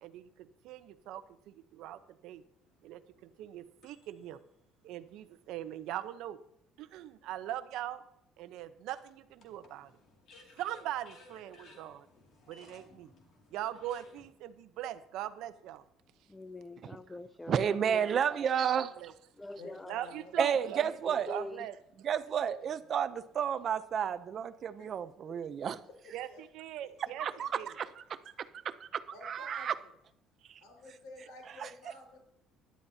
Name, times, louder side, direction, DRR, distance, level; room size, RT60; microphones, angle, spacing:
voice 1, 0.0-2.4 2.8-4.4 4.8-6.4 6.8-8.0 8.4-9.9 10.5-12.1 12.5-13.1 13.5-15.8 18.5-19.1 19.9-21.8 26.1-27.3 27.5-27.7 30.5-30.6, right 12 dB, 70° right, 12 dB, 0.8 m, -41 dB
sound 1, 2.6-4.3 5.0-5.1 8.9-14.3, left 2 dB, 45° left, 2.4 m, -59 dB
voice 2, 16.3-18.2 19.4-20.0 21.1-21.6, left 2 dB, 10° left, 14 dB, 0.3 m, -44 dB
voice 3, 17.5-18.9 20.4-21.3 22.0-25.8 27.2-27.9 28.4-29.7 30.5-30.6 31.6-31.7, right 8 dB, 40° right, 13 dB, 0.6 m, -31 dB
voice 4, 19.6-20.7 21.1-21.4 22.6-22.7 24.8-25.0 25.3-25.7 26.2-26.4 27.3-27.4 29.1-29.9 30.6-32.2, left 2 dB, 85° left, 1 dB, 4.6 m, -51 dB
17.0 x 11.5 x 2.8 m, 0.75 s
cardioid pair, 155°, 0 cm